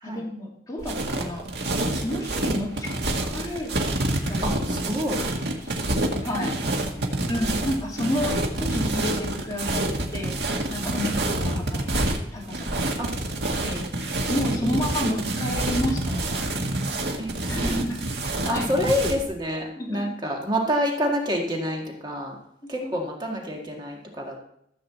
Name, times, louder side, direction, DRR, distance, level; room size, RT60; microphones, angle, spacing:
voice 1, 0.0-1.5 1.9-2.9 3.2-3.7 4.3-4.6 5.5-5.7 6.2-6.6 7.3-9.9 10.1-10.4 10.7-13.1 13.6-17.1 17.5-18.0 18.2-18.7 19.8-20.1 22.6-22.9, left 1 dB, 20° left, -3 dB, 2.8 m, -31 dB
sound 1, 0.8-19.2, right 1 dB, 75° right, 1.9 m, -27 dB
voice 2, 4.4-5.2 6.6-7.3 10.9-11.1 13.0-13.1 14.6-14.8 17.2-17.9 18.5-22.4 22.7-24.4, equal, 25° right, 0 dB, 1.8 m, -28 dB
14.5 x 5.0 x 7.4 m, 0.74 s
head